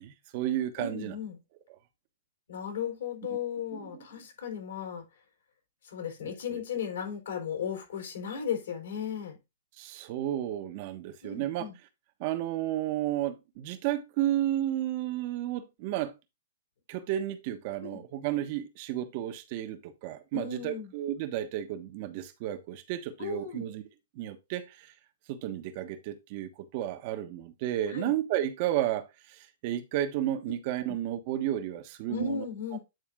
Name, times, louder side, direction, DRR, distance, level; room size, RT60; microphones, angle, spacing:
voice 1, 0.0-1.1 3.7-4.0 6.2-6.6 9.8-11.7 12.2-16.1 16.9-23.8 24.1-24.9 25.3-32.4 32.7-32.8, right 12 dB, 45° right, 1.2 m, -32 dB
voice 2, 0.8-1.4 2.5-5.0 5.8-9.4 11.2-11.8 17.8-18.0 20.3-20.9 23.2-23.7 27.9-28.1 30.9-31.0 32.1-32.8, left 7 dB, 75° left, 4.1 m, -36 dB
9.3 x 4.1 x 3.7 m
hypercardioid pair, 145°, 0 cm